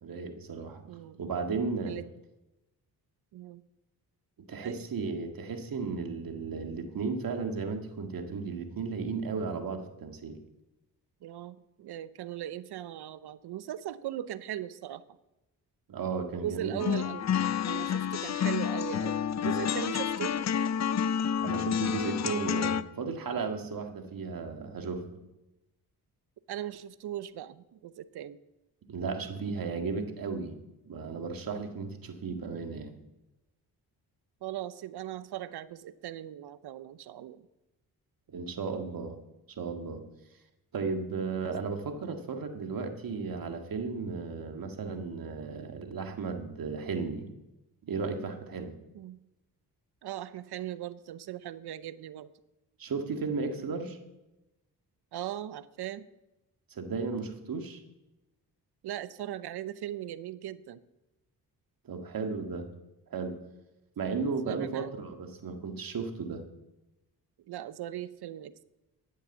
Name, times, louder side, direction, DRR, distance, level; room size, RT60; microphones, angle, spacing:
voice 1, 0.0-0.8 1.2-2.0 4.5-10.4 15.9-16.8 21.4-25.2 28.9-30.6 30.9-32.9 38.3-39.2 39.5-40.0 40.7-47.3 47.9-48.8 52.8-54.0 56.7-57.8 61.9-62.7 63.1-63.4 64.0-66.5, right 4 dB, 60° right, 5 dB, 1.9 m, -35 dB
voice 2, 0.9-1.5 1.9-2.0 3.3-3.6 4.6-4.8 11.2-15.0 16.3-17.3 17.7-20.4 26.5-28.4 34.4-37.4 41.3-41.4 48.9-49.2 50.0-52.3 55.1-56.1 58.8-60.8 64.5-65.0 67.5-68.6, right 12 dB, 75° right, 16 dB, 0.8 m, -39 dB
sound 1, 16.8-22.8, left 8 dB, 45° left, 0.6 m, -29 dB
11.0 x 9.0 x 7.2 m, 0.99 s
cardioid pair, 75°, 39 cm